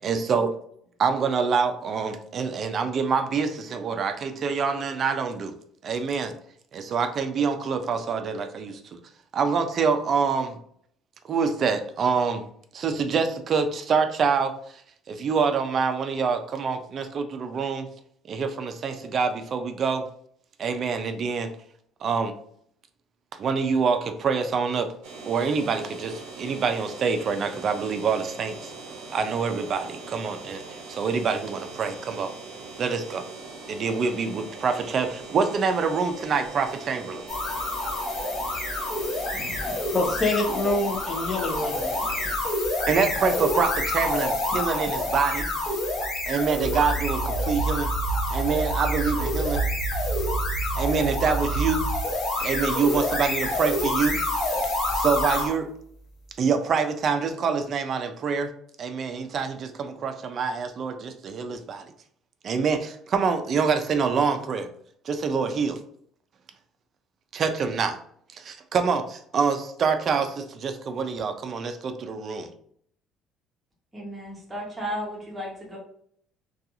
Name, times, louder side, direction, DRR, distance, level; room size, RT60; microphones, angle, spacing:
voice 1, 0.0-0.5 1.0-5.5 5.8-6.3 6.7-8.8 9.3-10.6 11.3-12.4 12.7-14.8 15.1-17.9 18.3-20.0 20.6-21.5 22.0-22.3 23.4-24.9 25.2-28.7 29.1-30.6 30.9-32.3 32.8-33.2 33.7-37.2 42.9-45.5 46.3-47.9 48.3-49.6 50.8-51.9 52.4-54.2 54.6-55.7 56.4-58.5 58.8-61.9 62.4-64.7 65.0-65.8 67.3-68.0 68.3-72.5, right 5 dB, 35° right, 0.3 m, -26 dB
sound 1, 25.0-42.4, right 3 dB, 80° right, 0.6 m, -41 dB
sound 2, 37.3-55.5, left 2 dB, 45° left, 1.1 m, -28 dB
voice 2, 39.3-41.9, left 2 dB, 25° left, 0.5 m, -27 dB
sound 3, 46.6-52.0, right 4 dB, 80° left, 1.0 m, -29 dB
voice 3, 73.9-75.8, equal, 15° right, 0.8 m, -34 dB
2.4 x 2.3 x 2.8 m
cardioid pair, 155°, 0 cm